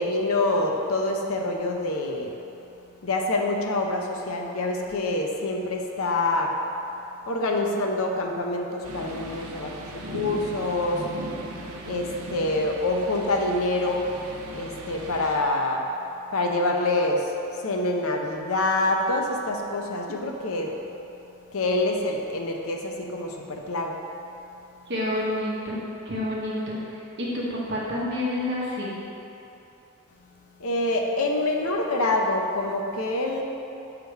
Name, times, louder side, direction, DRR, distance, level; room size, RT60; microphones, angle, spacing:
voice 1, 0.0-2.3 3.0-6.5 7.3-11.0 11.9-14.1 14.5-15.8 16.3-20.7 21.5-24.0 30.6-33.4, left 2 dB, 80° left, 1 dB, 0.7 m, -26 dB
sound 1, 8.8-15.4, right 1 dB, 90° right, 0.7 m, -38 dB
voice 2, 24.9-28.9, left 1 dB, 50° right, -6 dB, 1.1 m, -29 dB
7.9 x 3.7 x 4.6 m, 2.9 s
head